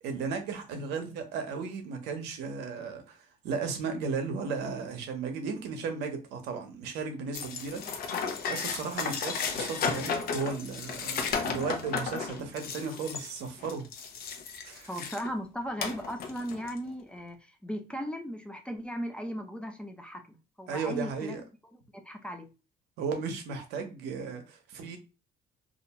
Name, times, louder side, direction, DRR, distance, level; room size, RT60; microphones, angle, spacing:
voice 1, 0.0-3.2 3.4-8.2 8.5-13.9 14.6-15.1 20.7-21.4 23.0-25.0, right 5 dB, 85° right, 0.7 m, -35 dB
sound 1, 7.3-15.3 15.8-16.8, left 6 dB, 60° left, 0.6 m, -34 dB
voice 2, 14.9-21.4 22.0-22.5, equal, 5° left, 0.4 m, -37 dB
2.5 x 2.2 x 2.8 m
cardioid pair, 110°, 17 cm